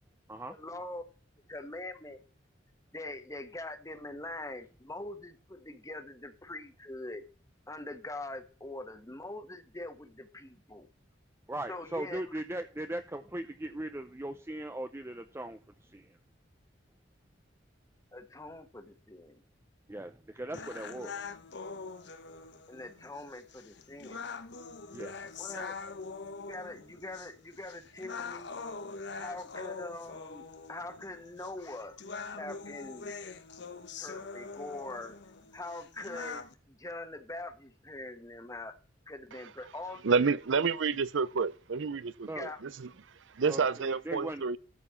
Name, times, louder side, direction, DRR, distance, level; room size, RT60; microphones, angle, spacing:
voice 1, 0.5-1.0 1.5-2.2 2.9-7.2 7.7-10.9 11.7-12.2 18.1-19.4 22.7-24.3 25.4-25.8 26.4-28.6 29.1-32.0 32.3-33.1 34.0-35.2 35.5-38.7 39.1-40.1 40.6-40.7 42.3-42.6, left 2 dB, 15° left, 1.3 m, -43 dB
voice 2, 11.5-16.2 19.9-21.2 24.9-25.2 42.3-42.5 43.4-44.6, right 1 dB, 15° right, 0.6 m, -39 dB
sound 1, 20.5-36.5, left 4 dB, 60° left, 1.0 m, -44 dB
voice 3, 40.0-42.9 43.3-44.6, right 5 dB, 70° right, 0.6 m, -29 dB
13.5 x 4.6 x 7.0 m
head